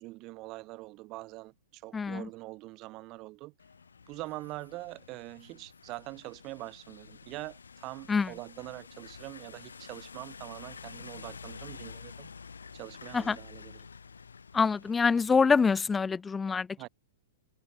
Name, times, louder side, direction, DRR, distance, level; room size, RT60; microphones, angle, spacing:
voice 1, 0.0-3.5 4.1-12.3 12.7-13.9 16.8-16.9, right 20 dB, 40° right, 7.1 m, -44 dB
voice 2, 1.9-2.3 8.1-8.3 13.1-13.4 14.5-16.9, left 5 dB, 15° left, 0.6 m, -25 dB
sound 1, 3.6-15.8, left 5 dB, 80° left, 7.4 m, -49 dB
hypercardioid pair, 110°, 0 cm